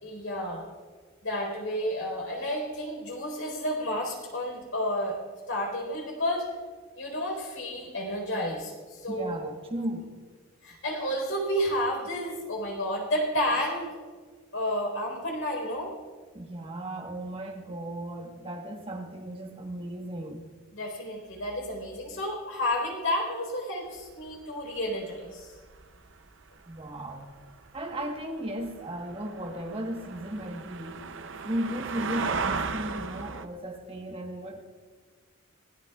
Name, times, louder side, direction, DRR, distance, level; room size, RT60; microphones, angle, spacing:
voice 1, 0.0-0.7 1.2-5.2 5.5-6.5 7.0-9.4 10.6-13.9 14.5-15.9 20.7-25.5, equal, 65° left, 1 dB, 4.2 m, -31 dB
voice 2, 9.1-10.1 16.3-20.5 26.7-27.3 27.7-31.0 31.4-34.6, right 1 dB, 25° right, 1 dB, 1.3 m, -35 dB
sound 1, 24.0-24.1 24.8-25.0 25.4-26.2 26.8-33.5, right 5 dB, 60° right, 0.6 m, -35 dB
24.0 x 18.0 x 2.4 m, 1.5 s
head